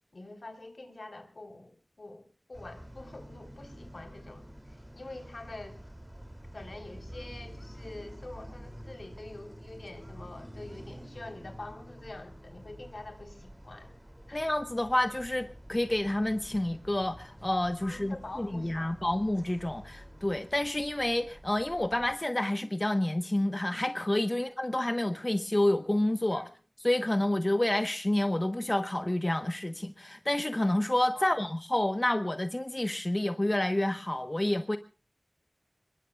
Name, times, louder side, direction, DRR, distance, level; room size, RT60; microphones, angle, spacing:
voice 1, 0.1-5.8 6.5-14.0 14.3-14.4 17.8-19.0 24.3-24.4 26.3-26.5 31.1-31.3, left 2 dB, 80° left, 5 dB, 3.7 m, -46 dB
sound 1, 2.5-22.2, equal, 10° right, 2.7 m, -48 dB
voice 2, 14.3-26.5 26.8-34.8, left 1 dB, 35° left, 8 dB, 1.0 m, -29 dB
25.0 x 21.5 x 2.3 m, 0.37 s
wide cardioid pair, 50°, 0 cm